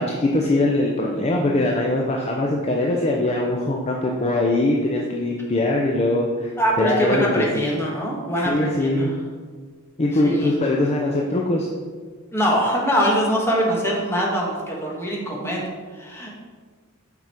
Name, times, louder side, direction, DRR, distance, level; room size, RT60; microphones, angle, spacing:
voice 1, 0.0-6.5 6.8-7.5 8.5-9.1 10.0-11.7, left 2 dB, 30° left, -1 dB, 0.5 m, -21 dB
voice 2, 6.6-9.1 10.2-10.5 12.3-15.7 15.9-16.3, equal, 10° left, -3 dB, 1.3 m, -23 dB
6.0 x 5.3 x 4.3 m, 1.5 s
head